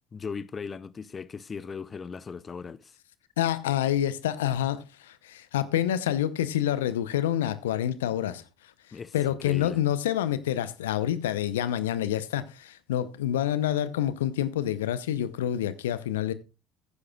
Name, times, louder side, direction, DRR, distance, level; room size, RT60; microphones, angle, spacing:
voice 1, 0.1-3.0 8.9-9.8, left 5 dB, 30° left, 0.5 m, -38 dB
voice 2, 3.4-8.4 9.1-16.3, left 11 dB, 80° left, 0.6 m, -27 dB
15.0 x 9.8 x 2.3 m
hypercardioid pair, 60°, 0 cm